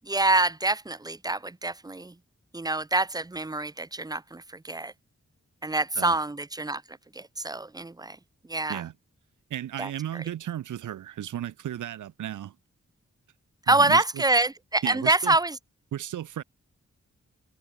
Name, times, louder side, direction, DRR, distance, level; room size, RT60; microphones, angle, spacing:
voice 1, 0.0-2.1 2.5-4.9 5.6-6.8 7.1-8.2 8.5-8.8 9.8-10.2 13.7-15.6, right 2 dB, 15° right, 0.6 m, -26 dB
voice 2, 9.5-12.5 13.7-14.2 14.8-15.4 15.9-16.4, right 11 dB, 90° right, 0.6 m, -34 dB
cardioid pair, 50°, 29 cm